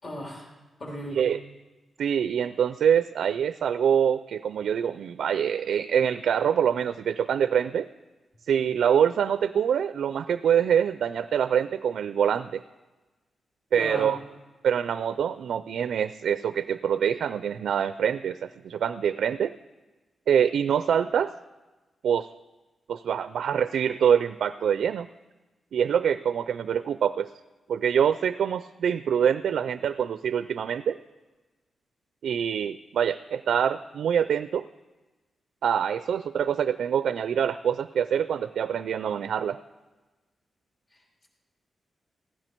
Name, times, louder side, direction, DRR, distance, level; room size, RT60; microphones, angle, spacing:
voice 1, 0.0-0.5 0.8-1.3 13.7-14.2 40.9-41.3, equal, 35° left, -1 dB, 3.0 m, -37 dB
voice 2, 2.0-7.9 8.5-12.6 13.7-14.2 14.6-19.5 20.3-21.3 22.0-22.3 22.9-25.1 25.7-27.3 27.7-31.0 32.2-34.6 35.6-39.6, right 8 dB, 85° right, 13 dB, 0.3 m, -25 dB
16.0 x 14.0 x 4.5 m, 1.2 s
wide cardioid pair, 170°, 0 cm